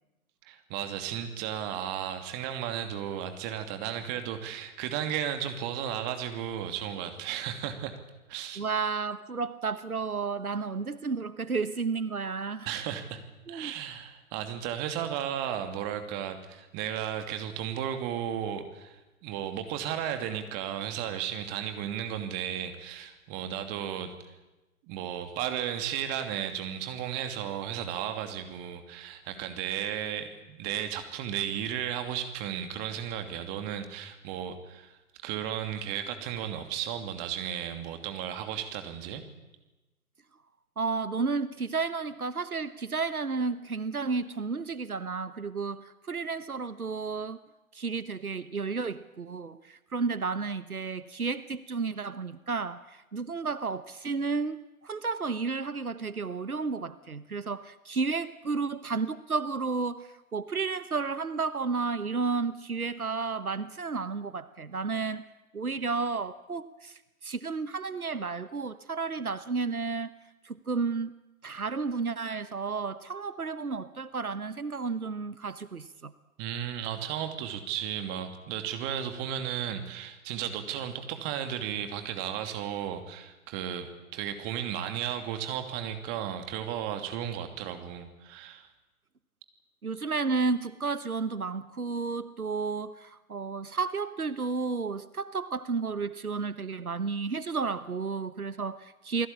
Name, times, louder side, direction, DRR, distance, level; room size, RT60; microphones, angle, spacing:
voice 1, 0.4-7.9 8.3-8.6 12.7-13.2 13.5-24.1 24.9-35.0 35.2-39.2 76.4-88.7, right 9 dB, 25° right, 7 dB, 2.7 m, -34 dB
voice 2, 8.6-12.7 13.5-13.7 40.8-47.4 47.7-65.3 65.5-70.1 70.4-71.1 71.4-76.1 89.8-99.3, right 4 dB, 75° right, 15 dB, 1.2 m, -32 dB
28.5 x 20.5 x 8.6 m, 1.1 s
figure-of-eight pair, 125°, 43 cm